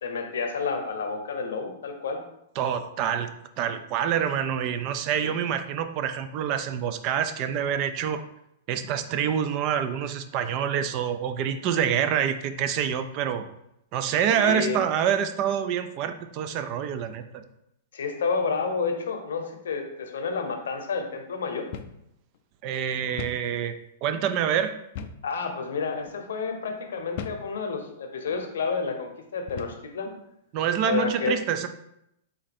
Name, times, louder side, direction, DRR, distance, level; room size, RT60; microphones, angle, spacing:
voice 1, 0.0-2.2 5.2-5.3 14.4-14.8 17.9-21.7 25.2-30.1 30.8-31.4, left 5 dB, 80° left, 4 dB, 0.7 m, -30 dB
voice 2, 2.6-3.3 3.6-8.3 8.7-13.5 13.9-17.4 22.6-23.7 24.0-24.8 30.5-31.7, right 9 dB, 40° right, 9 dB, 0.4 m, -26 dB
sound 1, 21.7-22.0 22.3-22.4 23.2-23.5 25.0-25.3 26.0-26.2 27.2-27.5 28.3-28.5 29.5-29.9, left 7 dB, 55° left, 0.4 m, -38 dB
4.2 x 2.6 x 4.2 m, 0.80 s
hypercardioid pair, 135°, 0 cm